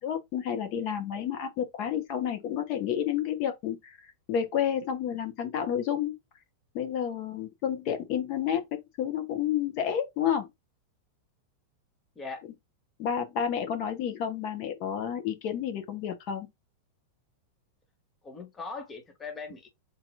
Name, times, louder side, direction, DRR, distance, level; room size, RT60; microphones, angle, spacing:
voice 1, 0.0-6.2 6.7-10.5 13.0-16.5, left 9 dB, 45° left, 1.1 m, -30 dB
voice 2, 18.2-19.7, left 4 dB, 20° left, 1.0 m, -40 dB
4.0 x 2.9 x 3.6 m
figure-of-eight pair, 90°, 0 cm